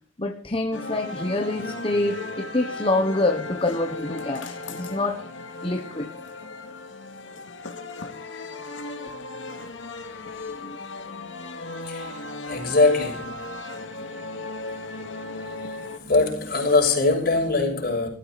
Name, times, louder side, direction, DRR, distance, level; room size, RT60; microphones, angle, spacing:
voice 1, 0.2-5.3 5.6-6.1, left 2 dB, 25° left, 1.2 m, -26 dB
sound 1, 0.7-16.0, left 2 dB, 65° left, 2.3 m, -36 dB
voice 2, 11.8-12.2 12.5-13.4 16.0-18.1, left 3 dB, 45° left, 6.3 m, -22 dB
18.5 x 14.5 x 4.2 m
head